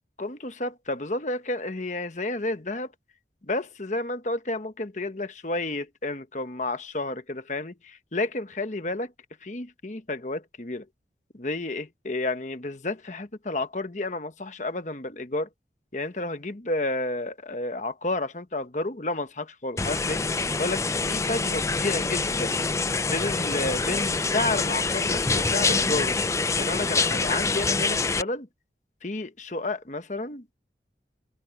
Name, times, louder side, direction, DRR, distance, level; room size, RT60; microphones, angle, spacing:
voice 1, 0.2-2.9 3.4-9.1 9.4-10.9 11.3-15.5 15.9-20.2 20.6-22.6 23.0-26.2 26.6-28.5 29.0-30.4, left 2 dB, 40° left, 1.2 m, -31 dB
sound 1, 19.8-28.2, left 4 dB, 15° left, 0.4 m, -26 dB
head